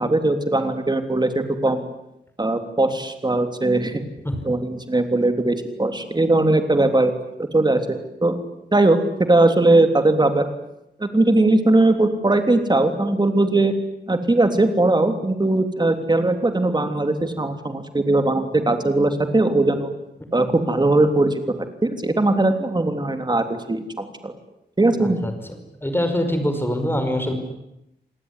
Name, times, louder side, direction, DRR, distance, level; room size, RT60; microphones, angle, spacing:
voice 1, 0.0-1.9 2.4-4.0 4.4-8.4 8.7-9.0 9.3-10.5 11.0-13.7 14.1-19.9 20.3-24.3 24.8-25.2, right 2 dB, 25° right, 7 dB, 3.2 m, -19 dB
voice 2, 25.0-27.3, equal, 10° left, 7 dB, 5.3 m, -24 dB
28.0 x 19.0 x 9.9 m, 0.85 s
wide cardioid pair, 130°, 18 cm